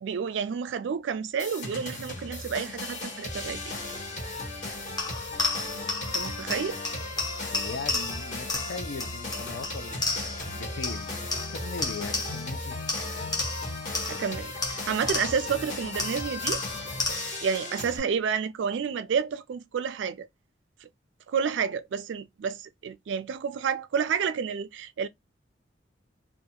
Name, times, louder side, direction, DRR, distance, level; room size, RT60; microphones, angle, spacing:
voice 1, 0.0-3.6 6.0-6.8 14.1-16.6 17.4-20.3 20.8-20.9 21.3-25.1, right 6 dB, 70° right, 0.3 m, -30 dB
sound 1, 1.4-18.0, left 2 dB, 40° left, 1.2 m, -36 dB
sound 2, 5.0-10.5 10.8-12.6 12.9-15.6 16.0-17.5, left 3 dB, 20° left, 0.6 m, -33 dB
voice 2, 5.6-6.4 7.5-12.8, left 4 dB, 60° left, 0.5 m, -40 dB
2.4 x 2.3 x 2.7 m
head